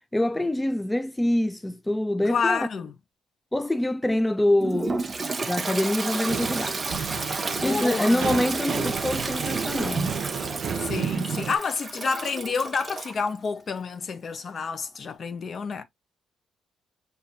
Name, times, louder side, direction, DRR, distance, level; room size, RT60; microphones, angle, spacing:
voice 1, 0.1-2.7 3.5-5.0 5.5-6.8 7.6-10.2, left 1 dB, 10° left, 0.3 m, -25 dB
voice 2, 2.2-2.9 7.6-8.3 10.8-15.8, left 5 dB, 50° left, 0.8 m, -29 dB
Toilet flush, 4.6-13.2, right 3 dB, 30° right, 0.8 m, -32 dB
sound 1, 6.3-11.6, right 7 dB, 65° right, 0.7 m, -31 dB
5.6 x 2.7 x 2.5 m
cardioid pair, 90°, 0 cm